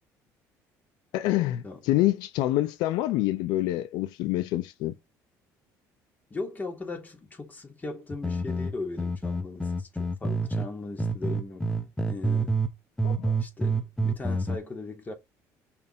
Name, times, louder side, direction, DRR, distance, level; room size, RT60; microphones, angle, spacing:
voice 1, 1.1-5.0 13.0-13.4, left 15 dB, 80° left, 0.6 m, -26 dB
voice 2, 6.3-11.7 12.1-12.6 13.4-15.1, left 3 dB, 25° left, 3.1 m, -38 dB
sound 1, 8.1-10.7 11.0-12.7 13.0-14.6, right 2 dB, 10° left, 1.0 m, -27 dB
5.4 x 4.4 x 4.3 m
cardioid pair, 105°, 7 cm